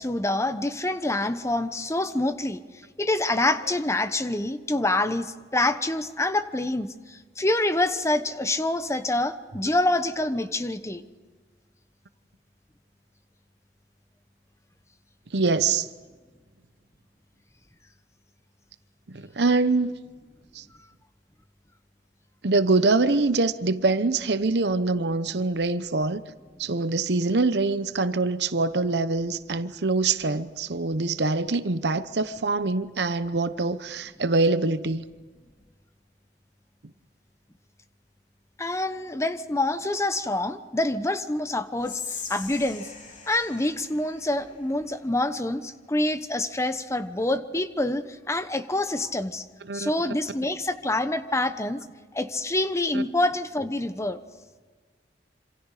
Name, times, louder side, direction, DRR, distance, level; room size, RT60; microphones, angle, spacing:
voice 1, 0.0-2.6 3.0-11.0 38.6-42.9 43.3-49.4 49.7-51.8 52.1-54.2, left 2 dB, 15° left, 1.1 m, -26 dB
voice 2, 15.3-15.9 19.1-19.9 20.5-20.6 22.4-26.2 26.6-35.0 49.7-49.9 52.9-53.0, right 3 dB, 65° right, 0.9 m, -24 dB
Whispering, 41.8-45.0, left 5 dB, 45° left, 3.3 m, -40 dB
27.0 x 26.5 x 5.0 m
head